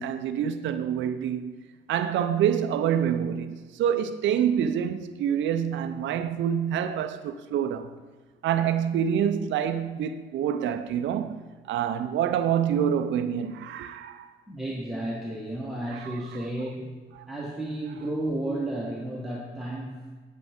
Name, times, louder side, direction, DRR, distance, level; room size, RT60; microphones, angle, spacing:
voice 1, 0.0-1.5 1.9-7.9 8.4-11.4 11.7-14.3 15.9-16.1 17.2-17.3, right 9 dB, 70° right, 0.5 m, -27 dB
voice 2, 14.5-16.9 17.3-20.0, right 1 dB, ahead, 1.3 m, -32 dB
8.6 x 8.1 x 3.5 m
cardioid pair, 90°, 20 cm